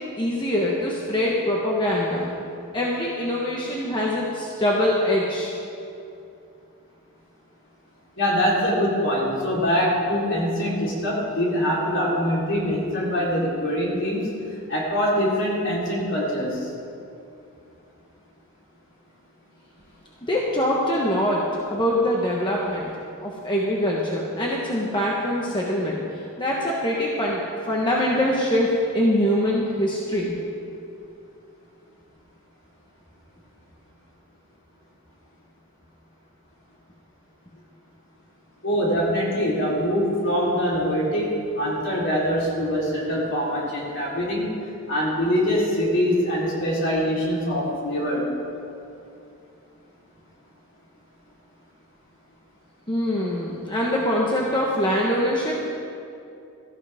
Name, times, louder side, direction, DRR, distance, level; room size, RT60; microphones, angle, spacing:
voice 1, 0.2-2.3 2.7-5.5 20.2-21.4 21.7-22.9 23.2-30.4 52.9-55.7, left 1 dB, 20° left, -4 dB, 1.3 m, -23 dB
voice 2, 8.2-14.3 14.7-16.7 38.6-44.6 44.9-48.3, equal, 55° left, -5 dB, 3.9 m, -23 dB
17.5 x 13.5 x 3.6 m, 2.6 s
head